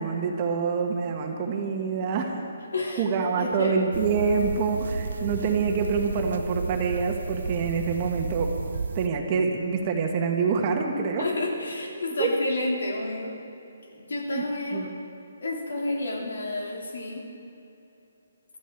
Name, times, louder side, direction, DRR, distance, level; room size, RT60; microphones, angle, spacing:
voice 1, 0.0-2.3 3.0-8.5 8.9-11.2 12.2-12.3 14.3-14.4 14.7-14.9, right 5 dB, 25° right, 2 dB, 1.5 m, -26 dB
voice 2, 2.7-3.0 3.4-3.8 11.2-13.4 13.9-14.9 15.4-17.3, left 2 dB, 80° left, 0 dB, 3.3 m, -30 dB
sound 1, 3.9-9.1, right 4 dB, 65° right, 0.6 m, -32 dB
22.5 x 13.5 x 4.6 m, 2.8 s
hypercardioid pair, 170°, 0 cm